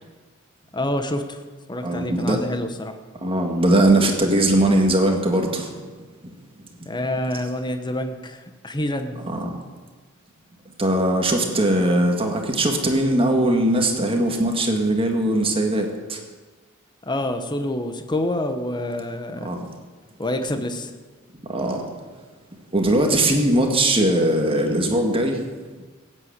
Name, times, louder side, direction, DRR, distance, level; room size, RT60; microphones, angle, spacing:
voice 1, 0.7-1.4 1.7-2.9 6.9-9.2 17.1-19.5 20.2-20.9, left 1 dB, 20° left, 7 dB, 1.1 m, -27 dB
voice 2, 1.8-2.4 3.2-5.7 9.2-9.6 10.8-16.2 19.4-19.6 21.5-21.8 22.7-25.4, right 1 dB, 25° right, 3 dB, 1.8 m, -20 dB
16.0 x 9.0 x 8.1 m, 1.4 s
head